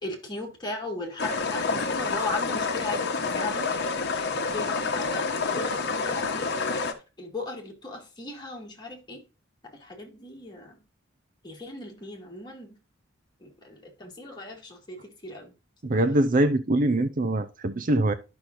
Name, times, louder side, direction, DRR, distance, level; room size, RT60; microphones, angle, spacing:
voice 1, 0.0-3.7 4.5-6.9 7.2-9.2 9.6-10.8 11.4-12.8 13.4-15.5 15.9-16.0, left 2 dB, 25° left, 2.7 m, -37 dB
sound 1, 1.2-6.9, left 4 dB, 60° left, 1.1 m, -28 dB
voice 2, 15.8-18.1, right 1 dB, 45° right, 0.6 m, -23 dB
11.5 x 6.0 x 2.6 m
head